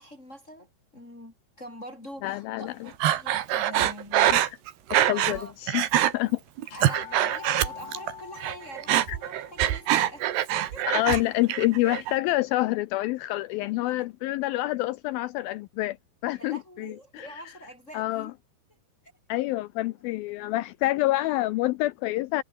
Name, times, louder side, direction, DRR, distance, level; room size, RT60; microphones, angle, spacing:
voice 1, 0.0-4.3 5.1-5.5 6.7-10.8 16.3-18.3, equal, 15° left, 4.5 m, -44 dB
voice 2, 2.2-2.9 4.2-4.6 5.1-5.9 6.1-6.4 9.1-9.2 10.8-16.0 16.2-17.4 17.9-18.3 19.3-22.4, left 17 dB, 85° left, 2.1 m, -27 dB
Breathing, 3.0-5.4 5.7-6.1 6.6-8.1 8.4-11.2 11.5-12.1, right 12 dB, 75° right, 3.7 m, -24 dB
sound 1, 5.1-5.6 5.9-6.0 6.6-12.5, left 7 dB, 70° left, 5.5 m, -46 dB
omnidirectional pair, 4.9 m